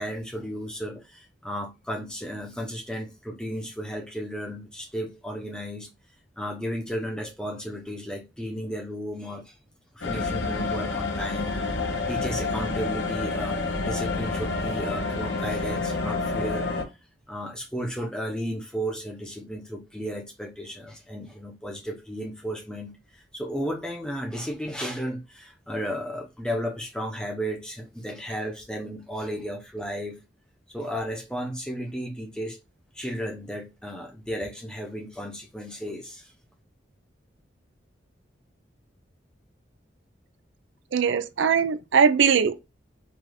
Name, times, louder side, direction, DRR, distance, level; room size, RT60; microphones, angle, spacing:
voice 1, 0.0-5.9 6.4-9.5 9.9-11.6 12.1-16.7 17.3-30.2 30.7-32.6 32.9-36.3, equal, 5° left, 0.9 m, -34 dB
sound 1, 10.0-16.8, left 3 dB, 70° left, 1.0 m, -28 dB
voice 2, 40.9-42.6, right 6 dB, 80° right, 0.5 m, -21 dB
4.9 x 2.6 x 3.8 m
head